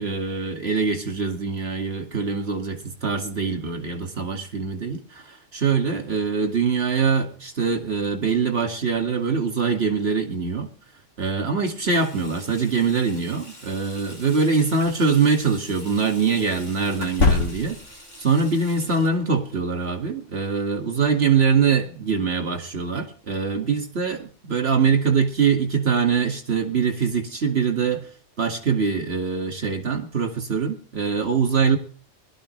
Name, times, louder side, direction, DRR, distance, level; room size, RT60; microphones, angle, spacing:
voice 1, 0.0-10.7 11.2-17.8 18.2-28.1 28.4-31.8, right 5 dB, 55° right, 2.5 m, -23 dB
Water tap faucet / Sink (filling or washing), 11.7-21.0, left 1 dB, 35° left, 7.7 m, -46 dB
sound 1, 14.7-14.9 16.9-18.0, left 3 dB, 85° left, 2.1 m, -22 dB
21.5 x 12.5 x 3.3 m
omnidirectional pair, 1.2 m